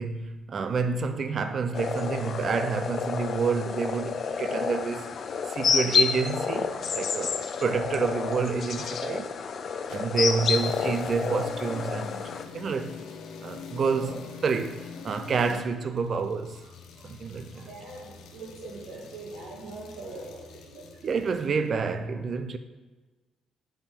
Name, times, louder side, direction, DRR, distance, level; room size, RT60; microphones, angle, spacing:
voice 1, 0.0-5.1 5.5-9.3 9.9-12.9 13.4-14.2 14.4-16.6 17.0-17.7 21.0-22.6, right 5 dB, 45° right, 0.5 m, -28 dB
sound 1, 1.7-12.4, left 6 dB, 50° left, 0.4 m, -29 dB
sound 2, 9.9-21.7, left 5 dB, 80° left, 0.8 m, -45 dB
voice 2, 17.7-20.9, right 2 dB, 85° right, 2.0 m, -41 dB
5.4 x 5.0 x 5.2 m
cardioid pair, 105°, 0 cm